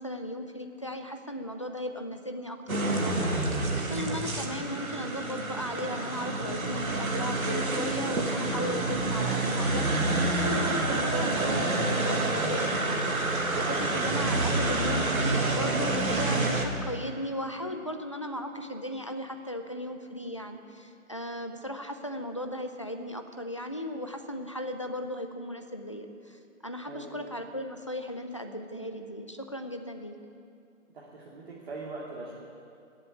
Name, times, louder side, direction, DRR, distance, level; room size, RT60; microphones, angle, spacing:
voice 1, 0.0-30.1, left 1 dB, 25° left, 6 dB, 0.6 m, -36 dB
sound 1, 2.7-16.7, right 2 dB, 90° right, 2.3 m, -28 dB
voice 2, 8.7-9.0 26.9-27.2 30.9-32.3, right 3 dB, 40° right, -6 dB, 2.5 m, -41 dB
18.0 x 7.8 x 9.7 m, 2.5 s
hypercardioid pair, 165°, 41 cm